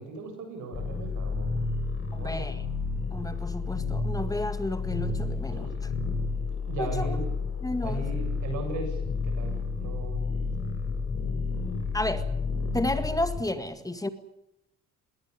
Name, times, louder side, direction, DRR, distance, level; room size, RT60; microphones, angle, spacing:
voice 1, 0.0-1.6 2.2-2.5 5.5-5.7 6.7-7.2 7.8-10.2, right 3 dB, 85° right, 7.7 m, -37 dB
sound 1, 0.7-13.4, left 4 dB, 45° left, 6.9 m, -31 dB
voice 2, 2.1-2.6 3.1-5.7 6.8-7.2 7.6-8.0 11.9-12.3 12.7-14.1, left 1 dB, 10° left, 1.9 m, -31 dB
21.5 x 18.0 x 9.8 m
cardioid pair, 90°, 30 cm